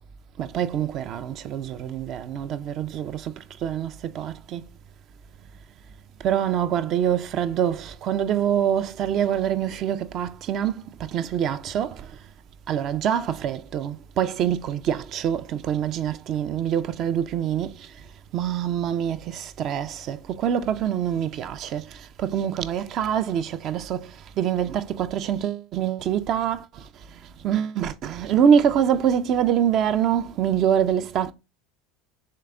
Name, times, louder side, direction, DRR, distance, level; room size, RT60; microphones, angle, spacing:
voice 1, 0.4-3.3 3.6-4.7 6.2-12.1 12.7-17.9 18.3-26.9 27.4-31.3, right 9 dB, 45° right, 0.3 m, -25 dB
3.7 x 3.4 x 3.4 m
figure-of-eight pair, 75°, 0 cm